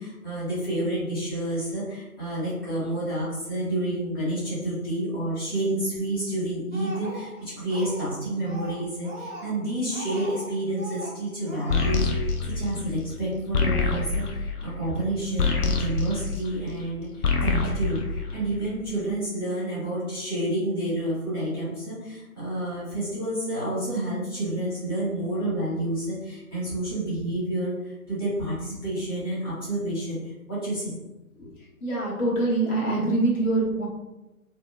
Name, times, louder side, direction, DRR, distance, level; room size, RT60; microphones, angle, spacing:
voice 1, 0.0-31.0, right 1 dB, 15° left, -11 dB, 0.6 m, -29 dB
Speech, 6.7-8.2 8.4-10.5 10.8-11.2 11.5-11.9, right 1 dB, 50° right, 0.8 m, -39 dB
sound 1, 11.7-16.9 17.2-18.9, left 4 dB, 90° left, 0.5 m, -26 dB
voice 2, 31.8-33.9, right 2 dB, 60° left, -5 dB, 1.2 m, -24 dB
2.7 x 2.1 x 2.4 m, 1.0 s
figure-of-eight pair, 140°, 44 cm